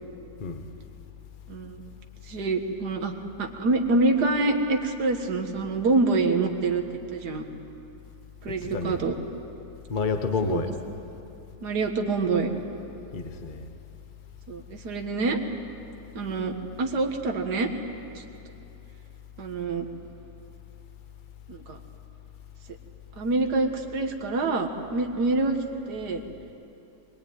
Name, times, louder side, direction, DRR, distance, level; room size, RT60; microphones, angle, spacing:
voice 1, 1.5-1.8 2.3-3.1 3.4-6.8 7.1-7.4 8.4-9.1 10.4-10.6 11.6-12.5 14.5-15.4 16.1-17.7 18.2-18.3 19.4-19.9 21.5-21.8 23.2-26.2, right 3 dB, 65° right, 4 dB, 2.2 m, -26 dB
voice 2, 8.7-9.0 9.9-10.7 13.1-13.7, left 4 dB, 30° left, 6 dB, 1.1 m, -29 dB
23.0 x 22.0 x 9.4 m, 2.8 s
omnidirectional pair, 1.9 m